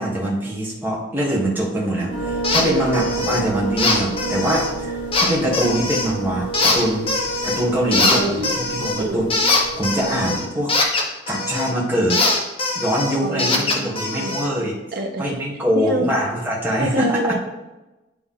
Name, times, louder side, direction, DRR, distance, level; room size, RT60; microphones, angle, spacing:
voice 1, 0.0-7.1 7.4-8.2 8.6-9.3 9.8-10.7 11.3-12.2 12.7-14.7 15.2-17.2, right 1 dB, 10° right, -4 dB, 1.6 m, -23 dB
sound 1, 2.1-10.4, right 3 dB, 80° left, 1.4 m, -30 dB
sound 2, 2.4-2.7 2.9-3.4 3.8-4.7 5.1-6.1 6.5-7.6 7.9-11.7 12.1-14.5, left 3 dB, 30° left, 1.0 m, -22 dB
voice 2, 7.9-8.6 9.0-9.3 13.2-14.4 14.9-15.3 15.7-16.1 16.8-17.4, right 1 dB, 60° right, 2 dB, 1.0 m, -26 dB
10.0 x 3.5 x 3.8 m, 1.1 s
head